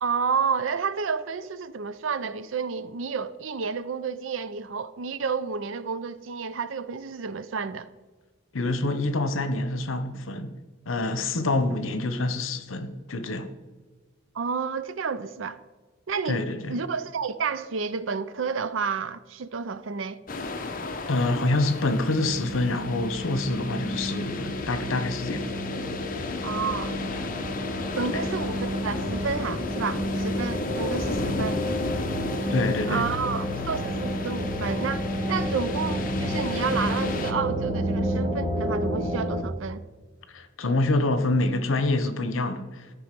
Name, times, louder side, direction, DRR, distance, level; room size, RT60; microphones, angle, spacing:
voice 1, 0.0-7.9 14.3-15.6 16.1-16.4 16.7-20.2 26.4-27.0 28.0-31.6 32.9-39.8, right 5 dB, 70° right, 0.5 m, -30 dB
voice 2, 8.5-10.5 10.9-13.5 16.3-16.7 21.1-25.5 28.1-28.2 32.5-33.1 40.3-42.9, left 2 dB, 80° left, 0.8 m, -26 dB
sound 1, 20.3-37.3, left 2 dB, 45° left, 0.8 m, -34 dB
sound 2, 22.1-39.4, equal, 35° right, 1.6 m, -31 dB
13.0 x 5.0 x 5.2 m
head